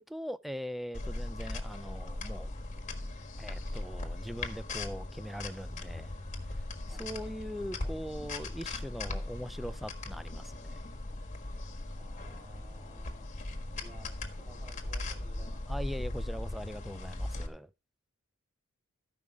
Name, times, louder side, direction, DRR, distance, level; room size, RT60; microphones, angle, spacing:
voice 1, 0.0-2.5 3.4-6.1 6.9-10.8 15.7-17.7, equal, ahead, 0.4 m, -41 dB
sound 1, 0.9-17.5, left 2 dB, 35° left, 1.5 m, -39 dB
voice 2, 11.9-13.3 13.8-15.6, right 2 dB, 15° right, 4.7 m, -56 dB
14.0 x 5.5 x 4.9 m
head